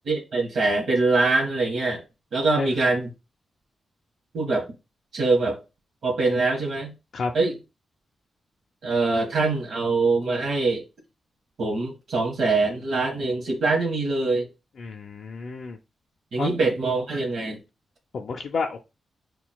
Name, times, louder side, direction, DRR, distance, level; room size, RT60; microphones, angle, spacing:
voice 1, 0.1-2.0 2.3-3.1 4.3-4.7 5.1-5.6 6.0-6.9 7.3-7.5 8.8-10.8 11.6-14.5 16.3-17.6, right 3 dB, 70° right, 1.0 m, -23 dB
voice 2, 14.8-15.8 16.4-16.5 18.1-18.8, left 4 dB, 65° left, 0.4 m, -30 dB
5.8 x 2.3 x 2.2 m
cardioid pair, 85°, 0 cm